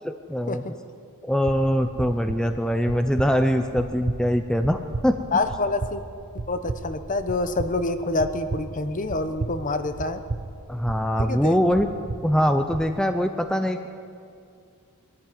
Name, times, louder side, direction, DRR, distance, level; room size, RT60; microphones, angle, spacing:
voice 1, 0.0-0.6 1.2-5.2 10.7-11.9 12.2-13.9, equal, 5° left, 7 dB, 0.6 m, -23 dB
sound 1, 1.5-12.9, right 3 dB, 55° right, 0.8 m, -35 dB
voice 2, 5.3-6.0 6.5-10.2 11.2-11.6, left 2 dB, 35° left, 9 dB, 1.1 m, -27 dB
21.0 x 13.5 x 9.6 m, 2.4 s
head